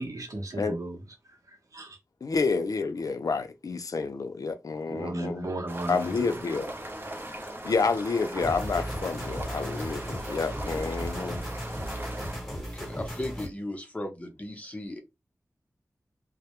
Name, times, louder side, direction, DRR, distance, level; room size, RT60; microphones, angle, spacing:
voice 1, 0.0-2.0 4.9-6.4, right 2 dB, 65° right, 0.8 m, -36 dB
voice 2, 2.2-5.4 5.9-6.7 7.6-11.4, left 4 dB, 70° left, 0.4 m, -29 dB
sound 1, 5.7-12.4, right 1 dB, 35° right, 0.7 m, -39 dB
sound 2, 8.4-13.5, equal, ahead, 1.1 m, -36 dB
voice 3, 12.4-15.0, left 1 dB, 20° left, 0.6 m, -37 dB
2.1 x 2.0 x 2.9 m
wide cardioid pair, 75°, 6 cm